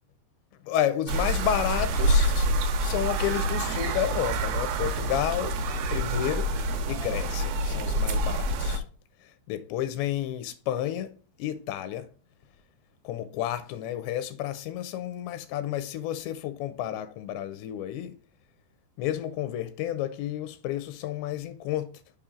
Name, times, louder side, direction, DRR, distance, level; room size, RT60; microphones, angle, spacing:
voice 1, 0.6-2.5 2.8-5.6 5.9-6.6 6.9-8.8 9.2-12.1 13.0-18.2 19.0-21.9, left 11 dB, 80° left, 2.8 m, -31 dB
sound 1, 1.1-8.8, right 1 dB, 75° right, 2.4 m, -27 dB
7.2 x 5.2 x 3.7 m
omnidirectional pair, 5.2 m